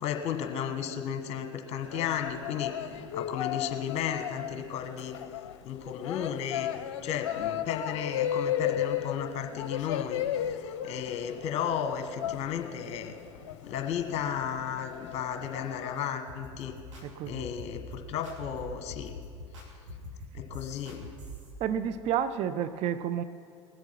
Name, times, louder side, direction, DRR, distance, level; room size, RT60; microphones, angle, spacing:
voice 1, 0.0-2.7 3.1-5.2 5.6-6.7 7.0-13.1 13.7-16.7 17.3-19.1 20.3-21.1, left 8 dB, 45° left, 6 dB, 1.4 m, -34 dB
sound 1, 1.9-16.1, left 10 dB, 65° left, 0.7 m, -35 dB
sound 2, 16.3-21.5, left 1 dB, 80° right, 2.8 m, -44 dB
voice 2, 17.0-17.5 21.6-23.2, right 9 dB, 45° right, 12 dB, 0.5 m, -30 dB
19.5 x 8.0 x 5.9 m, 2.5 s
hypercardioid pair, 80°, 16 cm